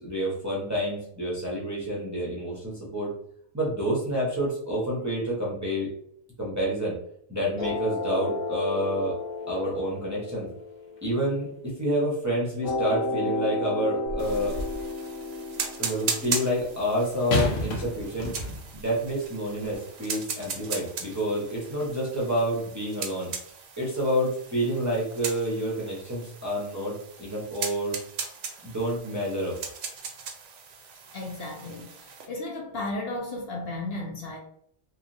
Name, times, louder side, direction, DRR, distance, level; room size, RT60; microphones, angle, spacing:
voice 1, 0.0-3.1 3.5-5.9 6.4-6.9 7.3-9.1 9.5-10.4 11.0-14.6 15.8-18.3 18.7-23.3 23.8-28.0 28.6-29.6, equal, 20° right, -6 dB, 0.6 m, -28 dB
sound 1, 7.6-12.0 12.6-17.6, left 3 dB, 40° left, 1.1 m, -33 dB
sound 2, 14.1-14.9 17.3-18.8 19.6-19.8, left 2 dB, 90° left, 1.1 m, -30 dB
sound 3, 14.2-32.3, right 6 dB, 80° right, 0.9 m, -38 dB
voice 2, 31.1-34.4, left 2 dB, 65° left, -1 dB, 0.8 m, -34 dB
2.9 x 2.4 x 2.5 m, 0.67 s
omnidirectional pair, 1.2 m